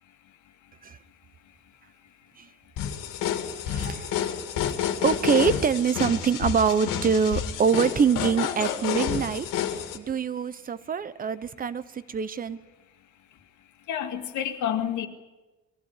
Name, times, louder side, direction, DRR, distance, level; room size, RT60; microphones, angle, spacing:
sound 1, 2.8-10.0, left 9 dB, 80° left, 2.3 m, -29 dB
voice 1, 3.6-4.3 4.7-9.5 9.9-11.8 12.1-12.6, right 6 dB, 25° right, 15 dB, 0.8 m, -25 dB
voice 2, 13.9-15.1, left 9 dB, 65° left, 5 dB, 2.2 m, -29 dB
22.0 x 15.0 x 9.8 m, 1.1 s
cardioid pair, 155°, 32 cm